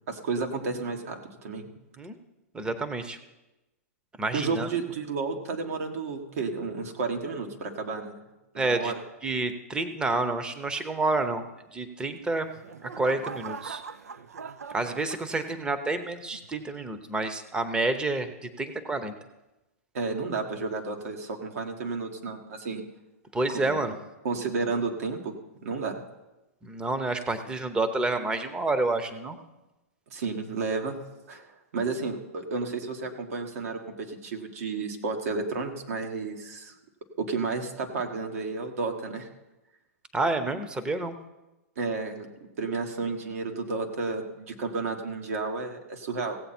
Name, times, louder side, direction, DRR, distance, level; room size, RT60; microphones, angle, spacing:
voice 1, 0.1-1.7 4.3-8.2 8.5-9.0 19.9-22.8 23.5-23.8 24.2-25.3 25.6-26.0 30.1-31.0 31.3-36.7 37.2-39.3 41.8-42.3 42.6-46.4, right 4 dB, 70° right, 4 dB, 1.7 m, -32 dB
voice 2, 2.5-3.2 4.2-4.7 8.6-8.9 9.2-11.4 11.7-12.5 12.8-13.8 14.7-19.1 23.3-23.9 26.6-29.4 40.1-41.1, right 2 dB, 10° right, 9 dB, 0.8 m, -29 dB
sound 1, 12.2-15.8 16.3-16.7, right 5 dB, 90° right, 0.5 m, -41 dB
16.5 x 7.8 x 4.4 m, 1.0 s
hypercardioid pair, 130°, 8 cm